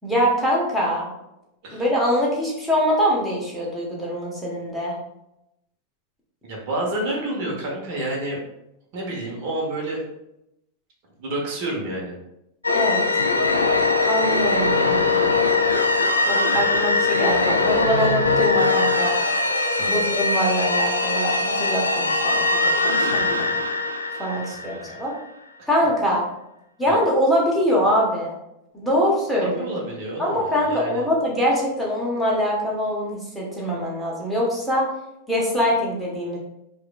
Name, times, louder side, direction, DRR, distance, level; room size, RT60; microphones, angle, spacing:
voice 1, 0.0-1.1 1.7-4.9 12.7-13.0 14.1-15.3 16.3-19.1 19.8-23.5 24.2-25.1 25.7-26.2 26.8-28.3 28.7-29.7 30.2-34.8 35.3-36.4, equal, 5° right, -5 dB, 1.3 m, -23 dB
voice 2, 6.4-8.4 8.9-10.0 11.2-12.1 19.8-20.0 23.3-23.5 24.4-25.0 26.9-27.0 29.4-31.0, right 1 dB, 45° right, -2 dB, 1.2 m, -29 dB
sound 1, 12.6-25.2, left 3 dB, 80° left, 0.4 m, -21 dB
4.8 x 2.6 x 2.4 m, 0.84 s
figure-of-eight pair, 90°, 0 cm